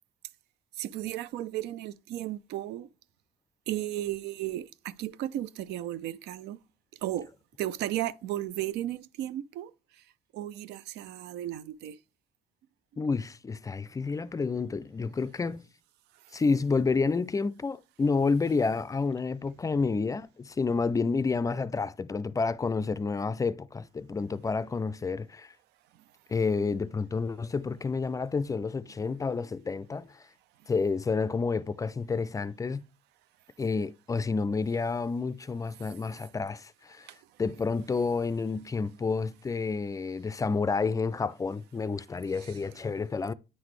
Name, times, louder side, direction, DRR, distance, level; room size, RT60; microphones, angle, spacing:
voice 1, 0.8-2.9 3.7-6.6 7.0-7.3 7.6-9.7 10.3-12.0 37.1-37.2 42.4-42.6, right 13 dB, 85° right, 0.5 m, -34 dB
voice 2, 13.0-15.6 16.3-25.5 26.3-30.3 30.7-32.8 33.6-37.1 37.4-43.3, left 4 dB, 20° left, 0.4 m, -29 dB
9.5 x 4.0 x 3.2 m
cardioid pair, 110°, 17 cm